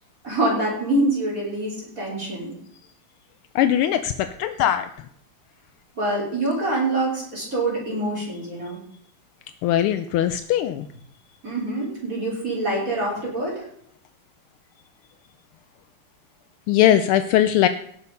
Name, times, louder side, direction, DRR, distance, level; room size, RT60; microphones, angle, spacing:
voice 1, 0.2-2.5 6.0-8.8 11.4-13.7, right 2 dB, 35° right, -4 dB, 4.0 m, -25 dB
voice 2, 3.5-4.9 9.6-10.9 16.7-17.7, left 11 dB, 80° left, 10 dB, 1.5 m, -20 dB
17.5 x 6.4 x 5.4 m, 0.65 s
omnidirectional pair, 2.4 m